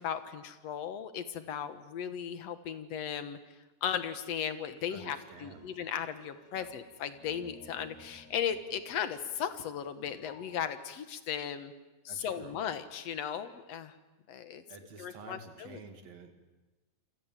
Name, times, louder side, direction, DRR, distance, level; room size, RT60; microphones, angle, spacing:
voice 1, 0.0-3.4 3.8-11.7 12.1-14.0 14.3-14.6 15.0-15.8, left 8 dB, 60° left, 10 dB, 2.2 m, -36 dB
voice 2, 4.9-5.7 6.5-6.8 12.1-12.6 14.7-16.3, right 4 dB, 60° right, 5 dB, 3.6 m, -50 dB
sound 1, 5.0-10.5, left 5 dB, 75° left, 4.0 m, -58 dB
28.0 x 25.0 x 7.5 m, 1.1 s
omnidirectional pair, 3.7 m